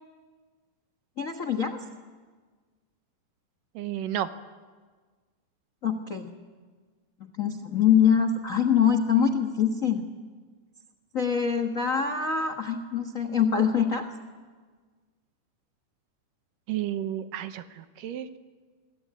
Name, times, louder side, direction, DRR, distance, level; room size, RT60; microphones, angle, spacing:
voice 1, 1.2-1.8 5.8-6.3 7.2-10.0 11.1-14.1, left 7 dB, 55° left, 8 dB, 0.8 m, -24 dB
voice 2, 3.8-4.3 16.7-18.4, right 11 dB, 80° right, 10 dB, 2.7 m, -32 dB
27.0 x 22.0 x 8.8 m, 1.5 s
omnidirectional pair, 3.9 m